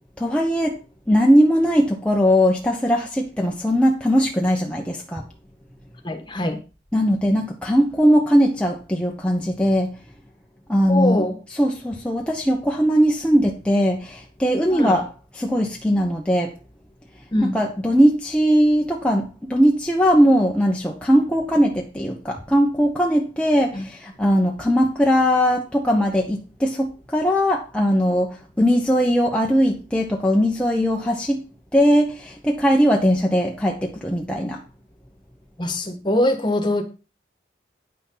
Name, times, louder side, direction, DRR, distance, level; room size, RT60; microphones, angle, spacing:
voice 1, 0.2-0.8 1.1-5.2 6.9-9.9 10.7-11.2 11.6-15.1 15.4-16.5 17.4-31.4 31.7-34.6, equal, 5° left, 1.1 m, -19 dB
voice 2, 6.0-6.6 10.9-11.4 14.7-15.0 17.3-17.5 23.7-23.8 35.6-36.8, left 1 dB, 25° left, 1.6 m, -23 dB
9.8 x 6.5 x 5.6 m
head